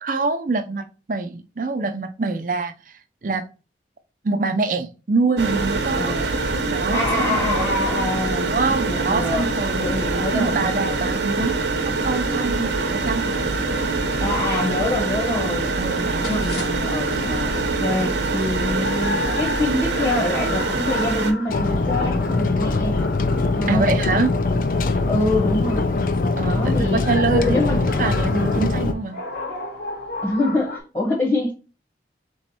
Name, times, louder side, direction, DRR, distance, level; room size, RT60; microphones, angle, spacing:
voice 1, 0.0-2.7 3.2-3.4 4.2-6.3 6.7-7.8 8.5-9.8 10.1-11.5 11.8-13.2 15.8-16.4 23.7-24.3 26.4-27.6 28.0-29.2, right 3 dB, 50° right, 0.5 m, -25 dB
sound 1, 5.4-21.3, right 3 dB, 85° right, 0.8 m, -24 dB
voice 2, 6.9-8.5 8.9-10.9 14.2-15.7 16.1-23.0 23.5-23.9 25.0-26.0 26.4-27.0 27.3-27.8 30.2-31.5, left 2 dB, 30° left, 1.1 m, -25 dB
sound 2, 16.2-30.8, left 2 dB, 70° left, 1.2 m, -35 dB
sound 3, 21.5-28.9, left 3 dB, 50° left, 0.4 m, -22 dB
3.5 x 3.2 x 4.3 m
head